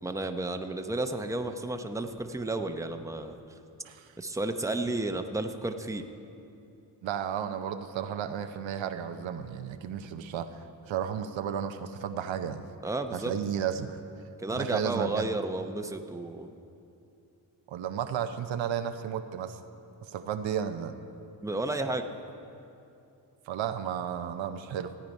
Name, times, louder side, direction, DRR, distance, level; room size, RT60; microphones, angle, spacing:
voice 1, 0.0-3.4 4.2-6.1 12.8-13.3 14.4-16.5 21.4-22.0, right 2 dB, 5° right, 6 dB, 0.7 m, -32 dB
voice 2, 7.0-10.5 10.9-12.7 13.1-14.0 14.6-15.3 17.7-19.6 20.1-20.9 23.5-24.9, right 8 dB, 85° right, 8 dB, 0.7 m, -33 dB
14.5 x 8.9 x 5.3 m, 2.7 s
cardioid pair, 60°, 44 cm